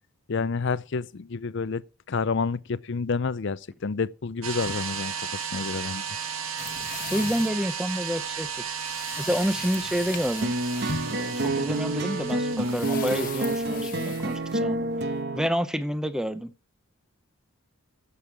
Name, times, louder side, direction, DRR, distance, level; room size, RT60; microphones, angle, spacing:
voice 1, 0.3-1.8 2.1-6.0, left 4 dB, 55° left, 0.5 m, -29 dB
sound 1, 4.4-13.8, right 7 dB, 75° right, 1.8 m, -35 dB
sound 2, 6.6-15.2, left 5 dB, 40° left, 1.2 m, -39 dB
voice 2, 7.1-8.5 9.2-10.6 11.1-14.9 15.3-16.5, equal, 5° right, 0.7 m, -28 dB
sound 3, 10.4-15.5, right 2 dB, 50° right, 1.1 m, -28 dB
15.5 x 7.0 x 4.8 m
head